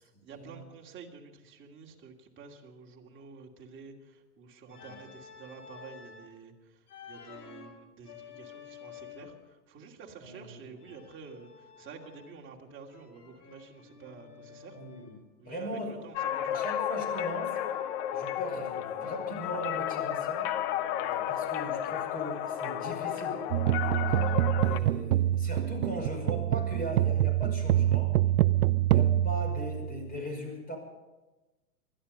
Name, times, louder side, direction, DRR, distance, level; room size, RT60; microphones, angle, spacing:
voice 1, 0.0-14.8 15.4-16.6, right 5 dB, 25° right, -1 dB, 2.6 m, -49 dB
Organ, 4.7-6.3 6.9-9.5 10.8-12.5 12.9-15.2 16.7-18.6 18.9-21.6, left 7 dB, 70° left, 3.1 m, -52 dB
voice 2, 4.7-5.0 10.2-10.7 14.7-15.2 15.4-15.9 16.5-17.6 18.1-20.5 21.0-24.3 24.6-28.1 28.9-30.8, equal, 20° left, 3 dB, 5.5 m, -39 dB
sound 1, 16.2-24.8, left 10 dB, 45° left, 1.0 m, -32 dB
sound 2, 23.5-30.2, right 13 dB, 75° right, 0.7 m, -26 dB
20.5 x 13.0 x 5.4 m, 1.1 s
hypercardioid pair, 115°, 47 cm